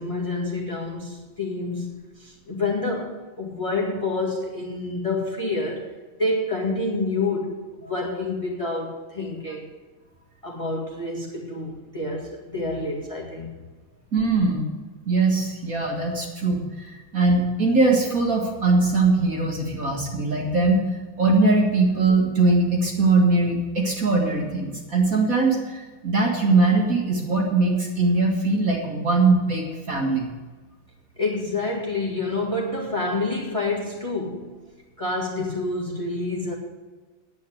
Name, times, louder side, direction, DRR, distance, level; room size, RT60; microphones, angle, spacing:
voice 1, 0.0-7.5 7.9-9.7 10.4-13.5 31.2-34.5 35.0-36.5, left 2 dB, 15° left, -2 dB, 1.9 m, -28 dB
voice 2, 14.1-14.7 15.1-20.8 21.2-30.3, right 3 dB, 45° right, -1 dB, 2.1 m, -21 dB
9.4 x 8.7 x 9.2 m, 1.3 s
omnidirectional pair, 2.3 m